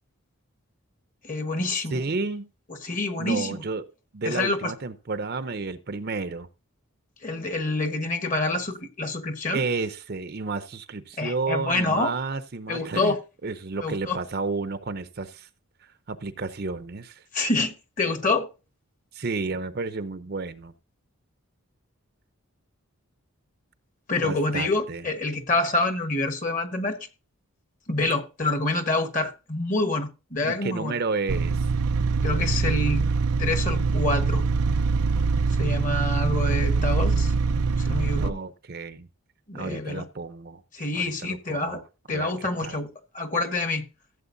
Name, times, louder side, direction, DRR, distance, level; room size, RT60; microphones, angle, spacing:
voice 1, 1.2-2.0 2.8-3.6 4.2-4.7 7.2-9.6 11.2-12.1 12.7-13.2 13.8-14.2 17.3-18.5 24.1-27.0 27.9-31.0 32.2-33.0 33.4-34.4 35.6-37.3 37.8-38.4 39.5-40.0 40.7-41.8 42.1-42.9 43.1-43.8, left 2 dB, 35° left, 1.3 m, -27 dB
voice 2, 1.9-2.5 3.2-3.8 4.1-6.5 9.5-13.1 13.4-15.5 15.8-17.2 19.1-20.7 24.2-25.1 30.4-31.7 38.2-39.1 39.5-40.6 40.9-41.8 42.1-42.8, right 3 dB, 45° right, 0.6 m, -31 dB
sound 1, 31.3-38.3, right 4 dB, 90° right, 0.6 m, -23 dB
15.5 x 7.7 x 2.6 m
head